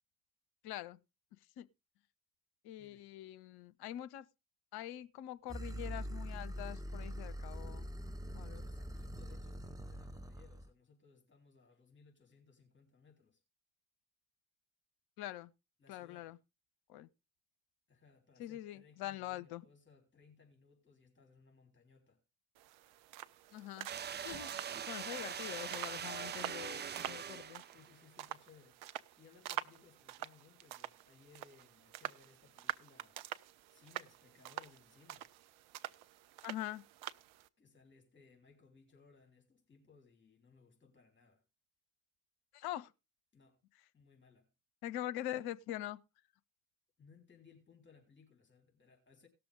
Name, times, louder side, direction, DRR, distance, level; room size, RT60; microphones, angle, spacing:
voice 1, 0.6-1.0 1.6-1.7 2.6-4.3 4.7-7.9 8.3-8.6 15.2-15.5 15.9-16.4 16.9-17.1 18.4-19.6 23.5-23.9 24.2-24.5 24.9-27.6 36.4-36.8 42.5-42.9 44.8-46.0, left 13 dB, 60° left, 0.8 m, -44 dB
sound 1, 5.5-10.7, equal, 10° right, 1.2 m, -44 dB
voice 2, 8.2-13.4 15.8-16.4 17.9-22.2 27.7-28.8 29.2-33.2 33.7-35.3 37.6-41.4 43.3-43.6 43.9-44.5 47.0-49.3, left 5 dB, 25° left, 3.7 m, -64 dB
sound 2, 22.6-37.5, right 13 dB, 65° right, 0.7 m, -47 dB
sound 3, 23.9-27.9, right 8 dB, 25° right, 0.5 m, -42 dB
18.0 x 6.9 x 3.7 m
figure-of-eight pair, 45°, 43 cm